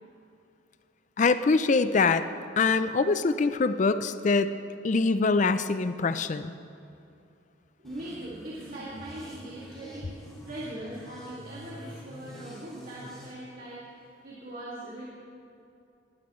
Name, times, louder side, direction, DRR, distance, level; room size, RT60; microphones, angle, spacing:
voice 1, 1.2-2.2 2.6-4.5 4.8-6.5, left 4 dB, 40° left, 11 dB, 0.4 m, -24 dB
sound 1, 7.8-13.3, equal, ahead, 2.6 m, -46 dB
voice 2, 7.8-15.1, right 1 dB, 45° right, -9 dB, 2.2 m, -41 dB
20.0 x 11.5 x 3.1 m, 2.6 s
head